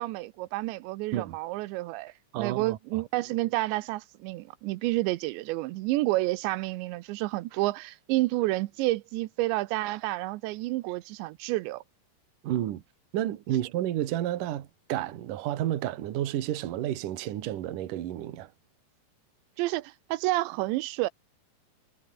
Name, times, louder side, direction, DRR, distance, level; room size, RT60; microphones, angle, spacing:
voice 1, 0.0-11.8 19.6-21.1, right 19 dB, 85° right, 3.1 m, -30 dB
voice 2, 2.3-3.0 12.4-12.8 13.1-18.5, right 12 dB, 60° right, 2.7 m, -31 dB
omnidirectional pair, 5.0 m